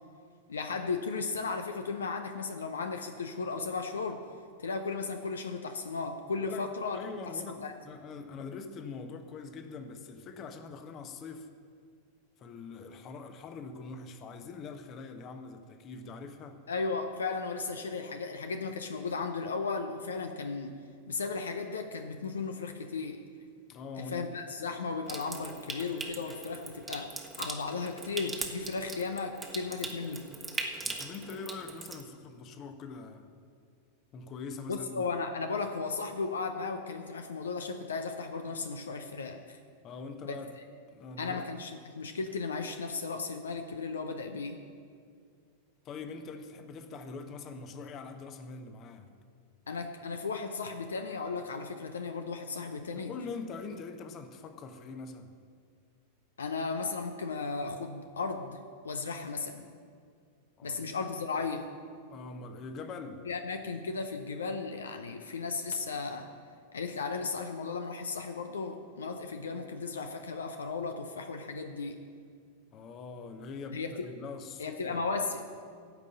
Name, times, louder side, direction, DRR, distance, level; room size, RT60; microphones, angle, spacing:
voice 1, 0.5-4.2 4.6-7.0 7.3-7.7 16.7-20.8 21.1-23.2 24.0-30.3 34.7-39.6 40.2-40.4 41.2-44.6 49.7-53.1 56.4-59.7 60.6-61.7 63.3-66.3 66.7-72.0 73.7-74.1 74.6-75.5, left 4 dB, 70° left, 7 dB, 0.7 m, -35 dB
voice 2, 6.9-11.5 12.4-16.6 23.7-24.3 30.8-33.3 34.1-35.1 39.8-40.6 40.9-41.5 45.8-49.1 53.0-55.3 60.6-60.9 62.1-63.2 72.7-75.0, left 4 dB, 35° left, 8 dB, 1.0 m, -43 dB
Water tap faucet / Sink (filling or washing) / Trickle dribble, 25.1-32.0, right 3 dB, 15° right, 1.2 m, -40 dB
15.5 x 5.4 x 7.7 m, 2.2 s
figure-of-eight pair, 90°, 0 cm